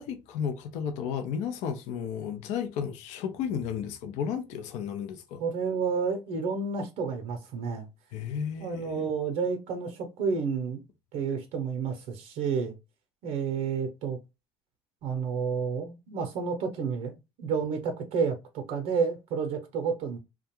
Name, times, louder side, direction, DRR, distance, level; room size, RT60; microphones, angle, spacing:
voice 1, 0.0-5.4 8.1-9.1, left 7 dB, 70° left, 0.5 m, -33 dB
voice 2, 5.4-7.9 8.6-10.8 11.1-12.8 13.2-14.2 15.0-20.2, right 5 dB, 65° right, 0.6 m, -30 dB
2.4 x 2.2 x 2.9 m
hypercardioid pair, 65°, 13 cm